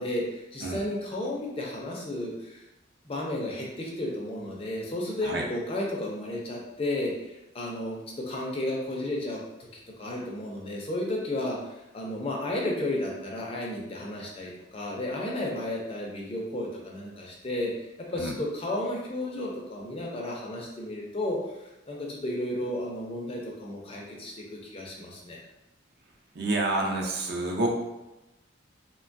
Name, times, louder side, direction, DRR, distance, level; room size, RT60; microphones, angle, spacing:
voice 1, 0.0-2.6 3.0-9.4 10.0-25.4, left 1 dB, 30° left, -2 dB, 0.4 m, -33 dB
voice 2, 26.3-27.7, right 2 dB, 50° right, 0 dB, 0.5 m, -28 dB
3.0 x 2.2 x 2.5 m, 0.97 s
head